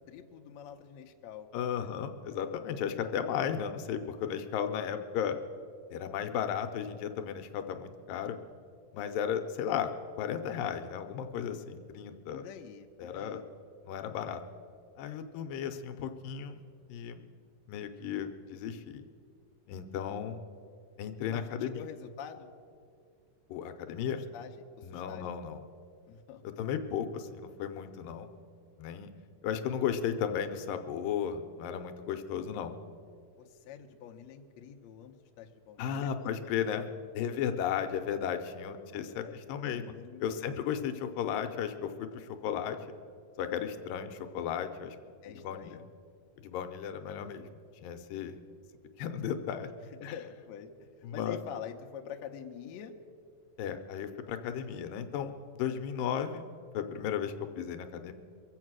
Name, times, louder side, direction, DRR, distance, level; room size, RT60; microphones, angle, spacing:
voice 1, 0.1-1.9 9.0-9.1 9.6-9.7 12.3-13.4 21.3-22.5 24.0-25.3 26.1-26.4 33.4-36.3 38.8-39.0 39.2-39.4 39.6-40.7 45.2-45.9 46.6-46.7 50.0-52.9, left 8 dB, 70° left, 3 dB, 1.8 m, -46 dB
voice 2, 1.5-5.4 5.9-8.4 8.9-9.9 10.2-12.4 13.0-13.4 13.8-14.4 15.0-16.6 16.9-17.2 17.7-19.0 19.7-20.4 21.0-21.8 23.5-24.2 24.8-25.6 26.6-28.3 28.8-29.1 29.4-32.8 35.8-36.9 37.1-39.9 40.2-42.8 43.4-45.0 45.3-45.8 46.4-47.5 47.8-48.4 49.0-49.7 50.0-50.2 51.0-51.4 53.6-56.5 56.7-58.1, left 8 dB, 85° left, 7 dB, 2.4 m, -35 dB
23.5 x 7.9 x 6.2 m, 2.2 s
omnidirectional pair, 4.0 m